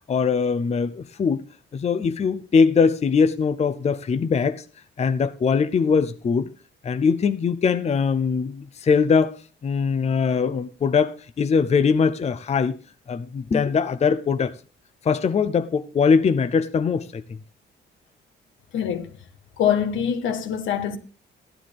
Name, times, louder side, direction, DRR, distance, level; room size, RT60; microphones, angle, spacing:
voice 1, 0.1-1.4 1.7-4.6 5.0-6.5 6.8-12.7 13.1-14.5 15.0-17.4, left 5 dB, 35° left, 0.6 m, -21 dB
voice 2, 18.7-19.1 19.6-21.0, left 8 dB, 80° left, 1.4 m, -24 dB
14.5 x 10.0 x 3.4 m
cardioid pair, 90°, 20 cm